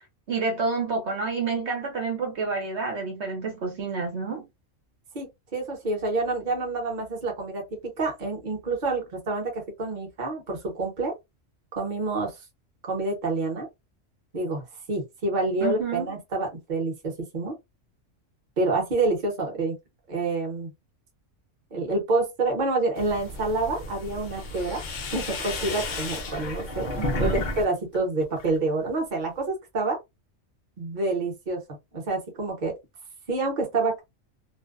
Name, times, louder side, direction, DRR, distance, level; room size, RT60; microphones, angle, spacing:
voice 1, 0.3-4.4 15.6-16.1 27.0-27.5, right 4 dB, 65° right, 1.1 m, -29 dB
voice 2, 5.1-11.1 11.8-12.3 12.8-13.7 14.3-14.6 14.9-17.6 18.6-19.8 20.1-20.7 21.7-24.8 25.1-26.9 27.2-30.0 30.8-31.6 31.9-32.8 33.3-34.0, right 3 dB, 40° right, 1.0 m, -27 dB
sound 1, 23.0-27.6 27.9-28.6, left 2 dB, 55° left, 0.5 m, -32 dB
2.6 x 2.1 x 2.3 m
omnidirectional pair, 1.3 m